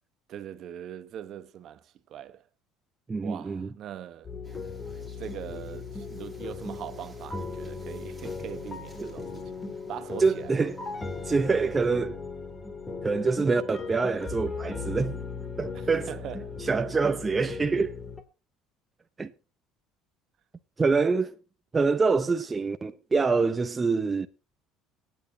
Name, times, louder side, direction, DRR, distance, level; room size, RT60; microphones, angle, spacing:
voice 1, 0.3-2.4 3.2-4.3 5.2-9.6 9.9-10.7 15.7-16.6, right 10 dB, 50° right, 1.0 m, -41 dB
voice 2, 3.1-3.7 9.0-9.1 10.2-10.8 11.3-12.2 13.0-15.2 15.6-16.1 16.6-17.9 19.2-19.3 20.8-21.4 21.7-24.3, right 4 dB, 20° right, 0.6 m, -25 dB
sound 1, 4.2-18.2, left 4 dB, 15° left, 2.1 m, -38 dB
sound 2, 4.4-11.9, right 1 dB, ahead, 3.3 m, -54 dB
23.5 x 9.1 x 2.7 m
cardioid pair, 140°, 0 cm